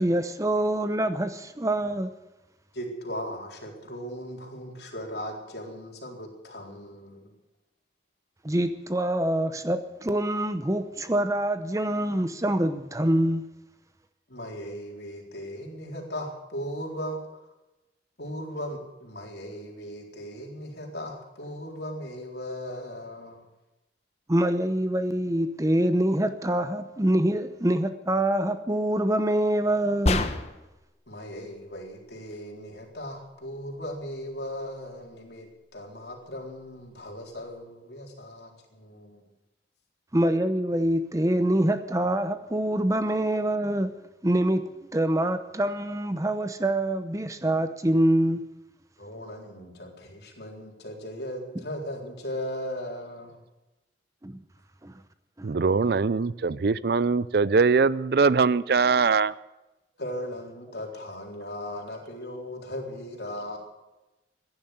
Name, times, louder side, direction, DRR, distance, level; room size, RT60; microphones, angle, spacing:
voice 1, 0.0-2.1 8.4-13.4 24.3-30.2 40.1-43.9 44.2-48.4 54.2-54.4 54.8-54.9 55.4-55.5, right 1 dB, 15° right, 0.7 m, -25 dB
voice 2, 2.7-7.3 14.3-17.2 18.2-23.4 31.1-35.5 35.7-39.2 49.0-53.4 60.0-63.6, equal, 60° left, 4.0 m, -37 dB
sound 1, 30.1-30.8, left 2 dB, 35° left, 1.0 m, -26 dB
voice 3, 55.4-59.3, right 4 dB, 55° right, 0.4 m, -22 dB
16.0 x 10.5 x 8.0 m
head